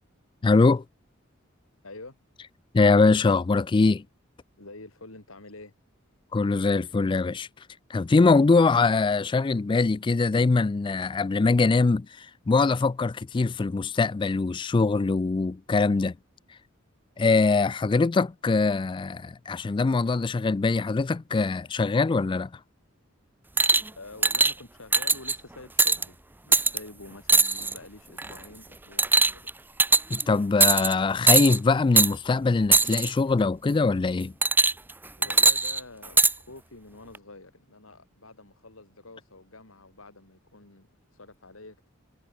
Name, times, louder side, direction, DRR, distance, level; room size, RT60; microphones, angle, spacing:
voice 1, 0.4-0.8 2.7-4.0 6.3-7.5 7.9-16.1 17.2-22.5 30.1-34.3, left 3 dB, 25° left, 0.3 m, -22 dB
voice 2, 1.8-2.2 4.6-5.7 8.3-8.7 23.9-26.2 26.5-29.5 35.2-41.9, left 2 dB, 90° left, 3.9 m, -47 dB
sound 1, 23.6-23.9 24.2-24.5 24.9-25.3 25.8-26.0 26.5-26.8 27.3-27.8 28.2-28.4 29.0-29.5 29.8-30.2 30.6-30.9 31.3-31.6 32.0-32.1 32.7-33.1 34.4-34.9 35.2-36.3 37.1-37.2, right 3 dB, 10° right, 0.7 m, -20 dB
head